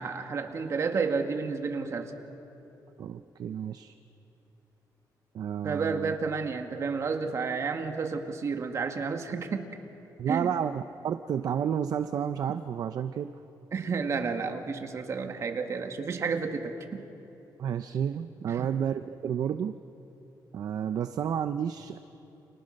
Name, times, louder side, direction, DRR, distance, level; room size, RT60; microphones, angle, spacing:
voice 1, 0.0-2.1 5.6-9.7 10.3-10.5 13.7-17.0 18.5-18.7, right 5 dB, 40° right, 5 dB, 2.0 m, -31 dB
voice 2, 3.0-3.9 5.3-6.1 10.2-13.3 17.6-19.7 20.5-22.0, right 8 dB, 55° right, 10 dB, 0.7 m, -31 dB
29.5 x 27.5 x 6.6 m, 3.0 s
wide cardioid pair, 165°, 8 cm